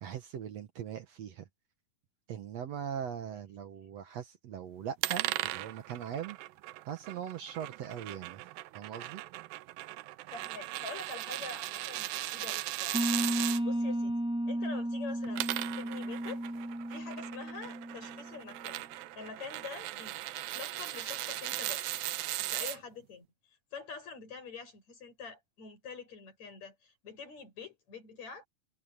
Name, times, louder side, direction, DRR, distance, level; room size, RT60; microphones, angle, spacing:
voice 1, 0.0-1.5 2.3-6.4 6.9-8.4 8.7-9.2, right 9 dB, 65° right, 1.8 m, -40 dB
sound 1, 5.0-13.6 15.1-22.8, right 16 dB, 85° right, 2.5 m, -38 dB
voice 2, 10.3-13.3 13.6-14.1 14.5-15.5 15.8-16.4 16.9-20.2 20.5-22.1 22.4-28.5, left 5 dB, 50° left, 9.1 m, -46 dB
sound 2, 12.9-18.5, right 1 dB, ahead, 1.4 m, -34 dB
omnidirectional pair, 4.1 m